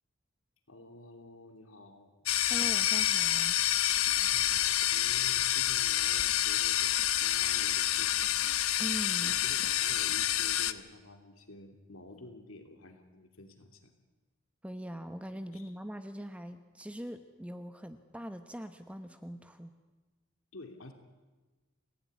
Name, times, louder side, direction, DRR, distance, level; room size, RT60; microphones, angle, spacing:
voice 1, 0.7-2.3 4.2-8.4 9.2-13.9 15.5-15.7 20.5-20.9, left 2 dB, 75° left, 5 dB, 2.9 m, -50 dB
sound 1, 2.3-10.7, left 12 dB, 90° left, 1.1 m, -28 dB
voice 2, 2.5-3.6 8.8-9.7 14.6-19.7, equal, 5° right, 8 dB, 1.0 m, -42 dB
30.0 x 16.5 x 9.6 m, 1.2 s
head